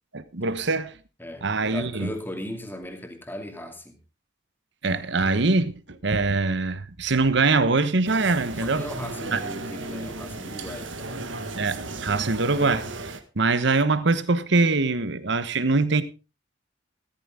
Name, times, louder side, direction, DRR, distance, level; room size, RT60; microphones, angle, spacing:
voice 1, 0.1-1.0 1.4-2.1 4.8-8.9 9.3-9.4 11.5-16.0, right 3 dB, 65° right, 1.1 m, -23 dB
voice 2, 1.2-4.0 8.6-11.4, left 1 dB, 10° left, 2.5 m, -37 dB
sound 1, 8.0-13.2, right 3 dB, 85° right, 1.6 m, -35 dB
14.0 x 14.0 x 3.7 m
head